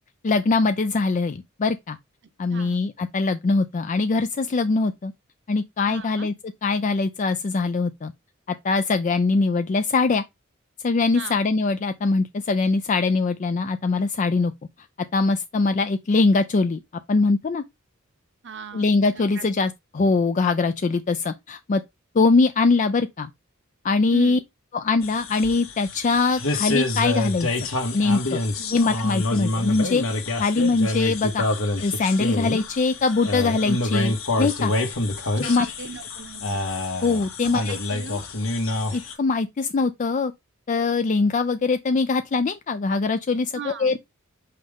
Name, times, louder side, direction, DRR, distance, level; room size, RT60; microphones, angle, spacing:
voice 1, 0.2-2.0 2.4-5.1 5.5-6.3 6.6-8.1 8.6-10.2 10.8-14.5 15.1-16.8 17.1-17.6 18.7-21.8 22.2-23.3 23.8-24.4 24.7-27.5 27.9-28.4 28.7-31.4 31.8-34.7 35.4-35.7 37.0-37.8 38.9-40.3 40.7-44.0, left 3 dB, 35° left, 0.4 m, -22 dB
voice 2, 2.5-2.8 5.9-6.3 11.1-11.4 18.4-19.4 24.1-24.4 28.5-28.8 35.4-36.6 37.4-38.2 43.5-44.0, right 5 dB, 60° right, 0.9 m, -39 dB
sound 1, 25.0-39.1, left 2 dB, 70° left, 1.8 m, -27 dB
5.7 x 5.1 x 3.6 m
head